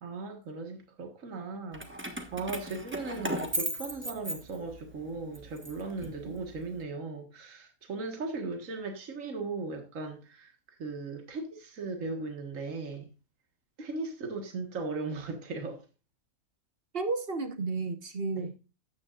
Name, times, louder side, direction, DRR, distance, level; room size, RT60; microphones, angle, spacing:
voice 1, 0.0-1.8 2.3-10.5 10.8-13.1 13.8-15.8 18.4-18.5, right 3 dB, 60° right, 2.0 m, -37 dB
Keys jangling, 1.7-4.9 5.3-6.6, right 1 dB, 10° right, 1.2 m, -36 dB
voice 2, 16.9-18.5, right 3 dB, 45° right, 1.4 m, -33 dB
13.5 x 9.6 x 2.5 m
omnidirectional pair, 1.5 m